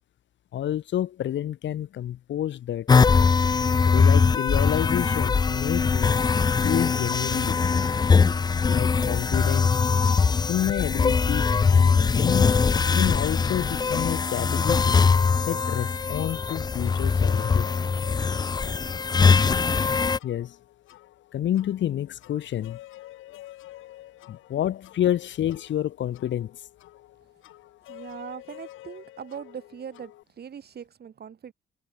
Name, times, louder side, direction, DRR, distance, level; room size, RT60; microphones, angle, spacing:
voice 1, 0.5-2.9 3.8-6.2 6.6-7.6 8.6-9.7 10.5-12.6 13.0-15.0 15.5-17.7 20.2-20.6 21.3-22.8 24.3-26.6, left 11 dB, 70° left, 2.0 m, -29 dB
sound 1, 2.9-20.2, left 5 dB, 20° left, 0.4 m, -21 dB
sound 2, 11.4-30.2, left 15 dB, 90° left, 3.9 m, -49 dB
voice 2, 27.9-31.5, right 8 dB, 55° right, 7.4 m, -40 dB
cardioid pair, 90°, 20 cm